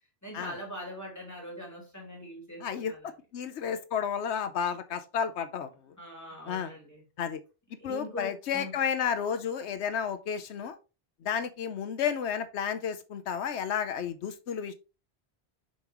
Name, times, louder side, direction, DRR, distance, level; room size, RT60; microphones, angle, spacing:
voice 1, 0.2-3.1 6.0-7.0 7.8-8.7, equal, 15° left, 3.0 m, -42 dB
voice 2, 2.6-2.9 3.3-5.9 6.5-6.7 7.2-7.4 7.8-10.8 11.2-14.7, left 7 dB, 90° left, 1.0 m, -32 dB
7.2 x 5.3 x 3.0 m
omnidirectional pair, 1.1 m